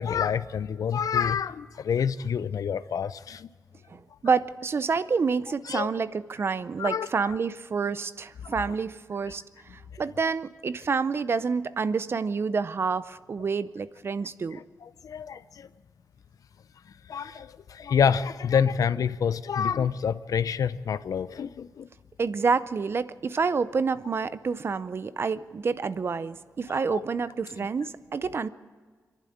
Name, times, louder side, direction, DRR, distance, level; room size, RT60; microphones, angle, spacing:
voice 1, 0.0-3.5 5.7-5.9 6.8-7.1 9.3-9.4 14.8-15.7 17.1-21.9 26.7-27.0 27.6-27.7, left 7 dB, 75° left, 0.6 m, -27 dB
voice 2, 3.9-9.4 10.0-14.6 22.2-28.5, right 5 dB, 40° right, 0.6 m, -28 dB
26.5 x 11.5 x 8.7 m
wide cardioid pair, 180°, 6 cm